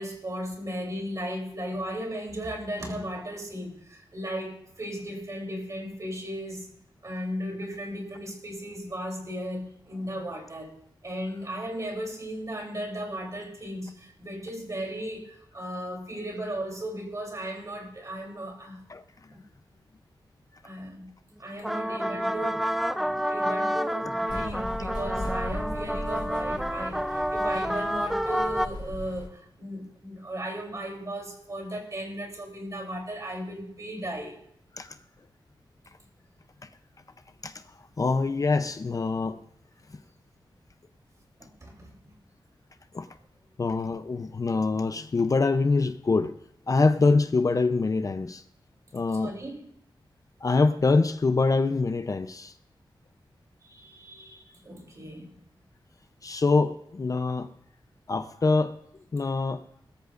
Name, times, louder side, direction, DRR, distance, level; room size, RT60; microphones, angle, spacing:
voice 1, 0.0-6.7 7.0-10.7 11.0-18.8 19.3-19.4 20.6-21.1 21.4-34.4 41.4-42.1 49.1-49.7 53.6-55.3, equal, 40° right, 1 dB, 3.4 m, -36 dB
sound 1, 21.5-28.7, equal, ahead, 0.5 m, -29 dB
sound 2, 24.3-29.3, left 1 dB, 60° left, 4.4 m, -38 dB
voice 2, 38.0-39.4 42.9-43.1 43.6-46.3 46.7-48.4 48.9-49.3 50.4-52.5 56.2-57.5 58.1-58.8 59.1-59.6, left 3 dB, 40° left, 10 dB, 0.6 m, -24 dB
21.0 x 13.0 x 2.5 m, 0.76 s
wide cardioid pair, 130°, 9 cm